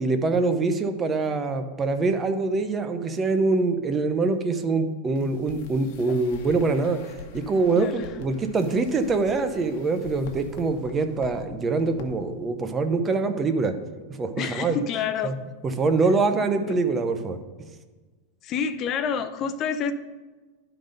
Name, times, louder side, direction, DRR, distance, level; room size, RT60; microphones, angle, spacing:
voice 1, 0.0-7.0 7.3-13.7 14.2-14.8 15.2-15.3 15.8-17.4, right 3 dB, 20° right, 8 dB, 0.7 m, -24 dB
sound 1, 5.2-11.5 11.8-12.1 12.3-12.4, left 5 dB, 55° left, 1.1 m, -44 dB
voice 2, 7.7-8.2 14.4-15.3 16.6-16.8 18.4-19.9, left 7 dB, 35° left, 11 dB, 0.6 m, -28 dB
11.5 x 3.9 x 5.2 m, 1.3 s
supercardioid pair, 145°, 0 cm